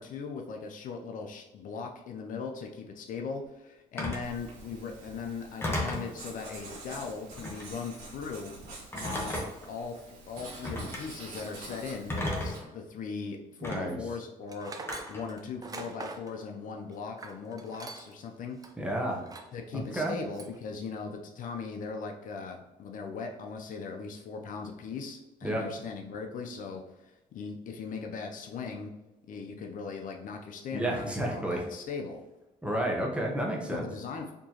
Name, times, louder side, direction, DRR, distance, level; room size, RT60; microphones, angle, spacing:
voice 1, 0.0-8.5 9.0-9.4 9.7-18.6 19.5-28.9 29.3-32.2 33.7-34.3, left 5 dB, 60° left, 3 dB, 0.5 m, -39 dB
Telephone, 4.0-4.3 5.6-6.1 7.4-7.7 8.9-9.7 10.6-11.0 12.1-12.7 13.6-13.8 14.9-15.3, left 1 dB, 15° left, 1.1 m, -33 dB
Writing, 4.2-12.6, right 3 dB, 85° right, 1.5 m, -46 dB
voice 2, 13.6-14.0 18.8-19.2 19.7-20.1 25.4-25.7 30.7-31.6 32.6-33.9, right 1 dB, 5° right, -1 dB, 0.9 m, -31 dB
Tools, 14.5-18.2 18.6-18.7 19.2-19.6 19.9-20.6, right 3 dB, 25° right, 0.5 m, -44 dB
4.4 x 2.9 x 2.8 m, 1.0 s
cardioid pair, 95°, 16 cm